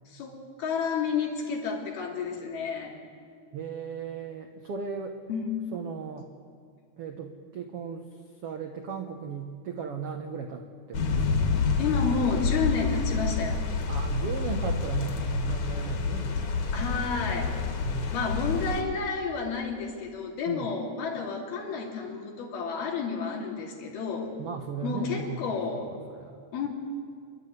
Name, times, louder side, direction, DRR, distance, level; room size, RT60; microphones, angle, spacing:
voice 1, 0.1-2.9 5.3-5.5 11.8-13.6 16.7-17.5 18.1-24.3 24.8-25.9 26.5-26.7, left 5 dB, 85° left, 0 dB, 4.6 m, -31 dB
voice 2, 3.5-5.2 5.7-6.3 7.0-8.1 8.4-11.6 13.9-17.2 17.6-18.3 20.5-20.7 24.4-26.4, right 6 dB, 75° right, 4 dB, 1.3 m, -37 dB
sound 1, 10.9-18.8, left 4 dB, 55° left, 2.8 m, -28 dB
28.0 x 12.0 x 9.5 m, 2.1 s
omnidirectional pair, 4.3 m